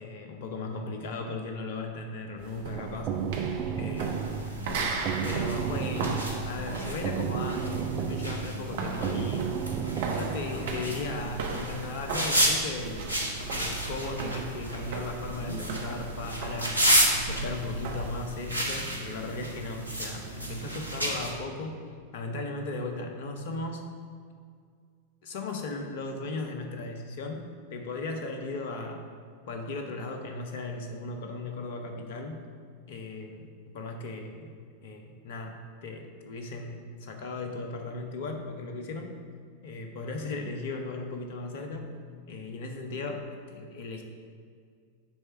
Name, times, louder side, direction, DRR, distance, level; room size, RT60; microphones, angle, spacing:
voice 1, 0.0-3.5 3.8-4.4 5.2-9.6 10.1-13.0 13.5-16.8 17.1-21.8 22.1-23.9 25.2-27.4 27.7-29.1 29.5-32.4 32.9-34.5 34.8-39.1 39.6-41.9 42.3-44.0, left 3 dB, 55° left, 4 dB, 0.9 m, -37 dB
sound 1, 2.4-18.2, right 3 dB, 55° right, 0.8 m, -38 dB
sound 2, 2.6-10.4, right 7 dB, 35° right, 0.4 m, -33 dB
sound 3, 4.0-21.3, right 1 dB, 85° right, 0.8 m, -32 dB
9.0 x 3.3 x 4.5 m, 2.1 s
figure-of-eight pair, 90°, 0 cm